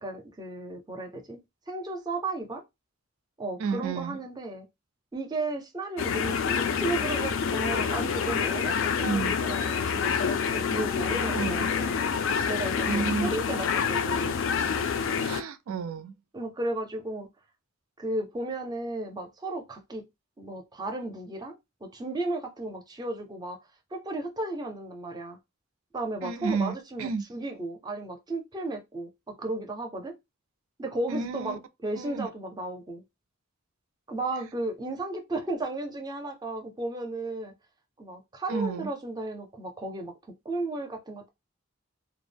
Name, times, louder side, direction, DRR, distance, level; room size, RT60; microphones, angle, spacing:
voice 1, 0.0-2.6 3.4-4.7 5.1-10.2 10.5-12.0 12.5-14.4 16.3-17.3 18.0-20.0 20.4-21.5 21.8-23.6 23.9-25.4 25.9-30.1 30.8-33.0 34.1-37.5 38.0-40.1 40.4-41.3, right 2 dB, 20° right, 0.5 m, -34 dB
voice 2, 3.6-4.2 9.0-9.3 11.3-11.7 12.9-13.3 15.2-16.1 26.2-27.2 31.1-31.6 32.0-32.3 38.5-38.9, right 5 dB, 90° right, 0.4 m, -31 dB
sound 1, 6.0-15.4, left 6 dB, 65° left, 0.3 m, -27 dB
2.2 x 2.0 x 3.3 m
head